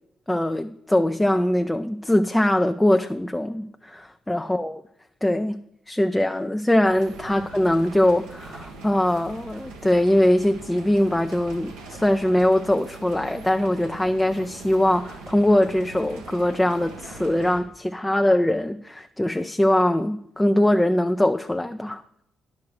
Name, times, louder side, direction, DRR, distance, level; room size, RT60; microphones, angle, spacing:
voice 1, 0.3-4.8 5.2-5.6 5.9-22.0, left 1 dB, 10° left, 0.5 m, -22 dB
sound 1, 6.8-17.6, right 3 dB, 85° right, 1.4 m, -42 dB
10.5 x 6.4 x 4.8 m
hypercardioid pair, 50°, 0 cm